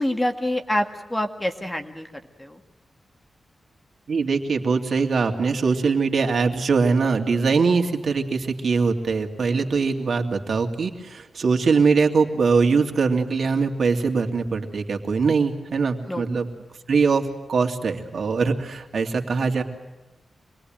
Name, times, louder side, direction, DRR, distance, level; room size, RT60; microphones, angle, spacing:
voice 1, 0.0-2.1 2.4-2.6 16.0-16.3, left 1 dB, 10° left, 5 dB, 2.1 m, -26 dB
voice 2, 4.1-16.5 16.9-19.6, right 4 dB, 65° right, 4 dB, 2.8 m, -22 dB
26.5 x 22.0 x 9.2 m, 1.0 s
wide cardioid pair, 120°, 0 cm